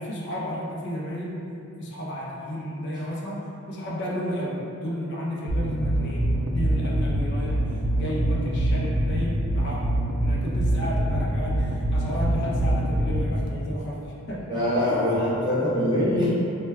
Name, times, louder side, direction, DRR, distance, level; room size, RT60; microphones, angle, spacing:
voice 1, 0.0-1.5 1.8-7.7 8.0-9.9 10.2-13.9 14.3-15.0, equal, 50° left, -5 dB, 0.4 m, -32 dB
sound 1, 5.5-13.5, right 1 dB, 90° right, 0.3 m, -24 dB
voice 2, 14.5-16.3, left 1 dB, 20° right, -9 dB, 0.5 m, -23 dB
2.1 x 2.1 x 3.3 m, 2.8 s
head